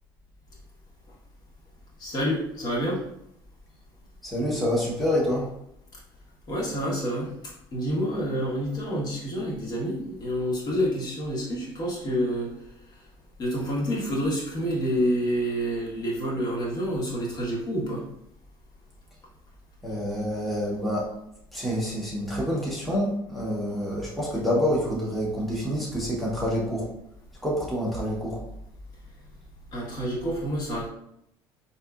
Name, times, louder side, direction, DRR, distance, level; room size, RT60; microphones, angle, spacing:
voice 1, 2.0-3.0 6.5-7.3 7.7-12.5 13.4-18.1 29.7-30.9, equal, 45° left, -4 dB, 1.5 m, -28 dB
voice 2, 4.2-5.5 19.8-21.1 21.5-26.9 27.4-28.4, equal, ahead, -6 dB, 1.1 m, -27 dB
4.0 x 2.8 x 2.4 m, 0.77 s
cardioid pair, 105°, 10 cm